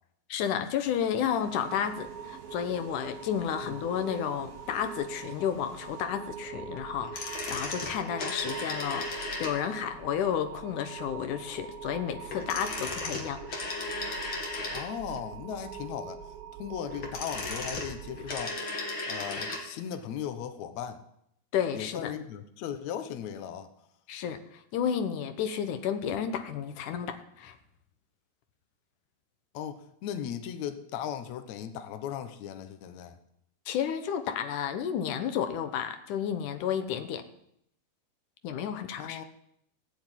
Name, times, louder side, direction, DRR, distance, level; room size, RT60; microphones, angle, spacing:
voice 1, 0.3-13.4 13.8-13.9 21.5-22.1 24.1-27.6 33.7-37.2 38.4-39.2, left 8 dB, 70° left, 8 dB, 2.0 m, -32 dB
sound 1, 0.8-6.0, right 1 dB, 35° right, 6.4 m, -55 dB
sound 2, 1.4-18.5, right 6 dB, 80° right, 2.2 m, -43 dB
sound 3, 7.0-9.9 12.3-15.2 16.8-19.7 19.9-20.0, left 2 dB, 35° left, 2.5 m, -36 dB
voice 2, 14.7-16.3 16.6-18.7 19.1-21.0 21.7-23.7 29.5-33.2 38.9-39.2, left 9 dB, 90° left, 9 dB, 1.6 m, -37 dB
17.0 x 7.6 x 9.9 m, 0.74 s
omnidirectional pair, 4.9 m